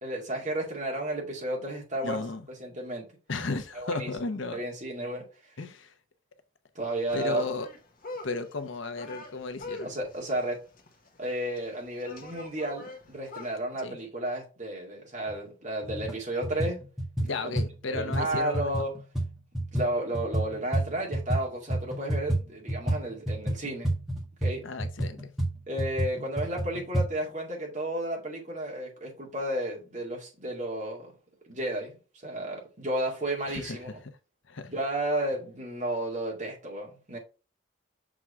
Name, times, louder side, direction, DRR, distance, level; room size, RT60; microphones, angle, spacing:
voice 1, 0.0-2.2 2.6-3.1 3.7-4.1 4.5-5.3 6.8-7.4 9.8-10.6 11.2-16.8 17.3-18.9 19.7-23.9 24.4-24.6 25.7-31.1 31.5-33.9 34.7-37.2, right 1 dB, 35° right, 2.2 m, -32 dB
voice 2, 2.0-2.4 3.3-4.6 5.6-5.9 7.1-7.7 8.2-9.9 13.8-14.0 17.2-18.8 24.6-25.3 33.5-33.9 34.5-34.7, left 3 dB, 70° left, 0.8 m, -34 dB
sound 1, 7.1-13.6, left 3 dB, 45° left, 1.0 m, -44 dB
sound 2, 15.3-15.4 15.8-16.2 16.4-21.4 21.7-27.1, right 1 dB, ahead, 1.6 m, -30 dB
6.1 x 3.7 x 4.4 m
head